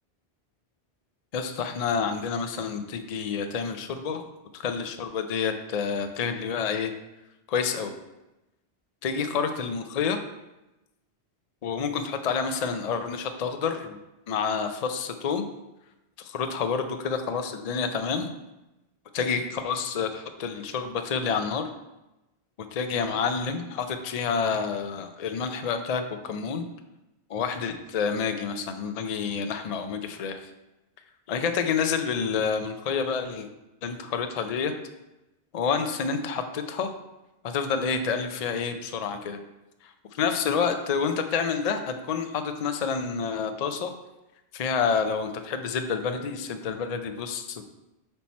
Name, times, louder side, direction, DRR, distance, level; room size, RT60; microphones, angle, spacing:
voice 1, 1.3-4.2 4.5-6.9 7.5-7.9 9.0-10.2 11.6-14.0 14.3-15.5 16.2-18.3 19.1-21.7 22.7-26.6 27.3-30.4 31.3-33.5 33.8-34.7 35.5-36.9 37.4-39.4 39.8-43.9 44.5-47.6, left 6 dB, 50° left, 7 dB, 0.5 m, -28 dB
5.7 x 4.5 x 4.2 m, 0.96 s
omnidirectional pair, 1.1 m